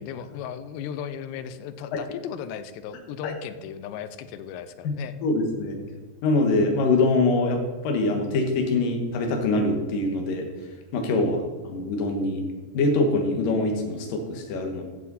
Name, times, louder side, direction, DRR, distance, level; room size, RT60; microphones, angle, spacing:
voice 1, 0.0-5.1 11.2-11.6, left 8 dB, 90° left, 11 dB, 2.9 m, -36 dB
voice 2, 5.2-5.8 6.2-12.5 12.7-14.8, left 2 dB, 65° left, 3 dB, 2.7 m, -24 dB
14.5 x 7.4 x 4.1 m, 1.3 s
omnidirectional pair, 4.9 m